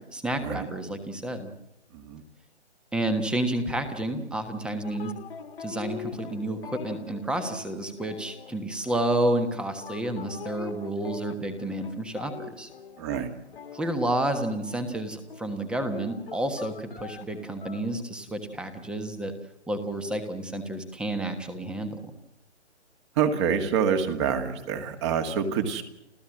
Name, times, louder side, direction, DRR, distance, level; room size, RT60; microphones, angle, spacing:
voice 1, 0.1-1.5 2.9-5.1 5.6-12.7 13.7-19.3 19.7-22.1, right 1 dB, 5° right, 8 dB, 1.3 m, -30 dB
sound 1, 4.8-15.0 15.3-18.0, left 7 dB, 55° left, 2.0 m, -43 dB
voice 2, 13.0-13.3 23.2-25.8, right 7 dB, 25° right, 7 dB, 2.0 m, -26 dB
29.5 x 14.5 x 7.6 m, 0.90 s
figure-of-eight pair, 150°, 35 cm